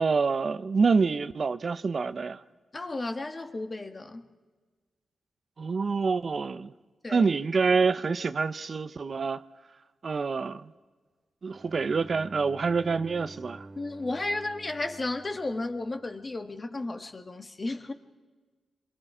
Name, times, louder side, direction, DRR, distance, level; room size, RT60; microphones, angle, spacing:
voice 1, 0.0-2.4 5.6-6.7 7.1-9.4 10.0-10.7 11.4-13.7, right 4 dB, 50° right, 0.7 m, -26 dB
voice 2, 2.7-4.3 7.0-7.3 13.8-17.9, left 2 dB, 35° left, 1.7 m, -33 dB
Bowed string instrument, 11.5-16.3, right 2 dB, 30° right, 1.4 m, -48 dB
26.5 x 22.5 x 5.0 m
cardioid pair, 70°, 0 cm